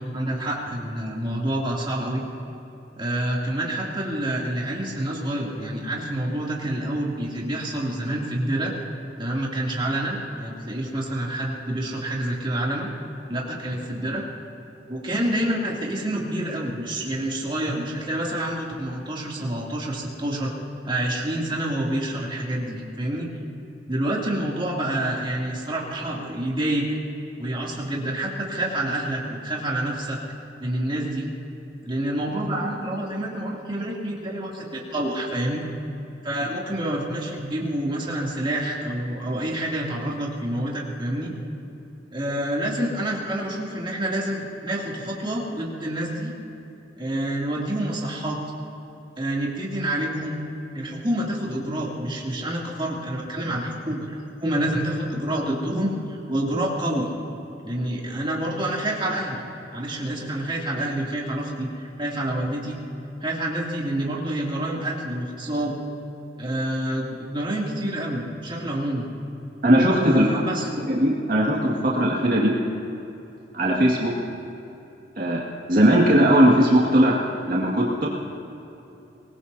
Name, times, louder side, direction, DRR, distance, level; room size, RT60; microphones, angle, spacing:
voice 1, 0.1-2.2 3.0-8.7 9.2-12.9 13.3-14.2 14.9-20.5 20.8-23.3 23.9-26.8 27.4-30.2 30.6-31.3 31.8-35.7 36.2-41.3 42.1-46.3 47.0-48.4 49.2-50.4 50.7-57.1 57.6-59.4 59.7-62.8 63.2-65.8 66.4-69.1 70.0-70.7, right 1 dB, 30° right, -4 dB, 2.8 m, -27 dB
voice 2, 69.6-70.3 70.8-72.6 73.5-74.2 75.2-75.4 75.7-77.2 77.5-78.1, equal, 50° right, -4 dB, 2.0 m, -19 dB
23.5 x 20.0 x 2.8 m, 2.9 s
head